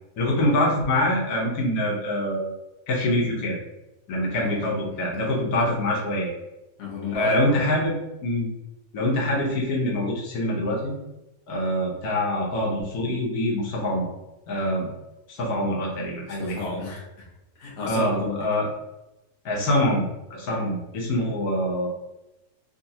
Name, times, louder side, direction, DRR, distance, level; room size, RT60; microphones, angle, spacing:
voice 1, 0.2-2.5 2.9-3.6 4.1-6.3 7.1-8.0 8.2-8.5 8.9-10.9 11.5-14.1 14.5-14.9 15.3-16.6 17.8-18.7 19.4-20.0 20.3-21.9, left 1 dB, 80° left, -3 dB, 1.3 m, -25 dB
voice 2, 4.3-5.4 6.8-7.8 15.5-15.6 16.2-17.3 17.6-18.4 20.4-20.6, left 3 dB, 55° left, -4 dB, 1.1 m, -34 dB
3.9 x 2.3 x 2.7 m, 0.96 s
omnidirectional pair, 1.6 m